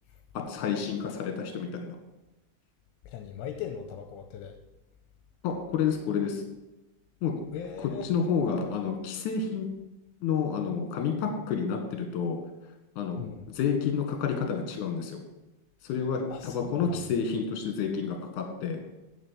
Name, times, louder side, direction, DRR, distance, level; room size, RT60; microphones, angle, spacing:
voice 1, 0.3-2.0 5.4-6.4 7.2-7.3 8.0-9.7 10.2-12.4 13.0-13.3 13.5-15.2 15.8-18.8, left 6 dB, 55° left, 4 dB, 2.6 m, -29 dB
voice 2, 3.1-4.6 7.5-8.1 13.2-13.4 16.3-17.1, left 8 dB, 80° left, 6 dB, 2.7 m, -39 dB
9.5 x 5.9 x 7.4 m, 1.0 s
omnidirectional pair, 5.0 m